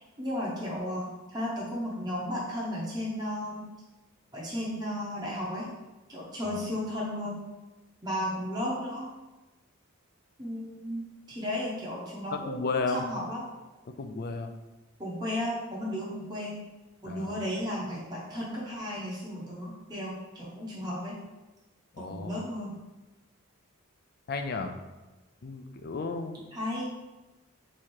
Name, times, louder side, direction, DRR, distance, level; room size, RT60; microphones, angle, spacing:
voice 1, 0.0-3.6 4.3-5.7 6.1-7.4 8.0-9.1 10.4-11.0 11.3-13.4 15.0-16.6 17.0-21.2 22.0-22.7 26.5-26.9, left 1 dB, 20° right, -6 dB, 0.8 m, -34 dB
voice 2, 12.3-13.0 13.9-14.5 17.0-17.4 21.9-22.4 24.3-24.8 25.4-26.4, left 4 dB, 45° left, 6 dB, 0.4 m, -34 dB
3.6 x 3.1 x 4.3 m, 1.1 s
head